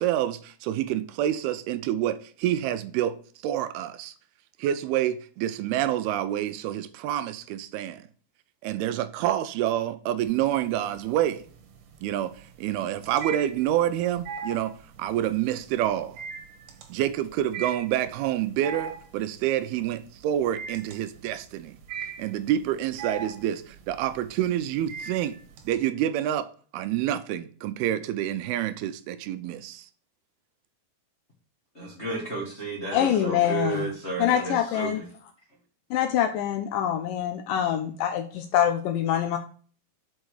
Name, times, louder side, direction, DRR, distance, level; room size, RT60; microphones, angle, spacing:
voice 1, 0.0-3.2 3.4-4.1 4.6-8.1 8.6-11.4 12.0-16.2 16.9-21.8 22.2-25.4 25.7-29.9, right 12 dB, 90° right, 2.6 m, -28 dB
sound 1, 10.2-10.9 11.2-25.7, right 6 dB, 70° right, 2.5 m, -39 dB
voice 2, 31.7-35.0, right 3 dB, 35° left, 1.1 m, -32 dB
voice 3, 32.9-33.9 34.2-35.0 35.9-39.4, left 10 dB, 80° left, 2.0 m, -25 dB
6.3 x 5.5 x 4.8 m
omnidirectional pair, 4.4 m